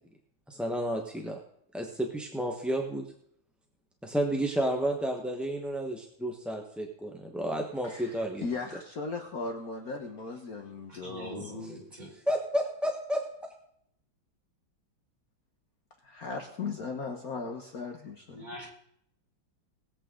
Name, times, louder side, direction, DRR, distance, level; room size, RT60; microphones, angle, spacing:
voice 1, 0.5-1.4 1.7-3.0 4.0-8.4 12.3-13.2, right 1 dB, ahead, 1 dB, 0.8 m, -31 dB
voice 2, 7.8-11.7 16.0-18.5, left 4 dB, 50° left, 3 dB, 1.5 m, -37 dB
voice 3, 10.9-12.1 18.3-18.7, equal, 20° right, -4 dB, 4.9 m, -42 dB
20.0 x 8.4 x 3.8 m, 0.70 s
omnidirectional pair, 2.2 m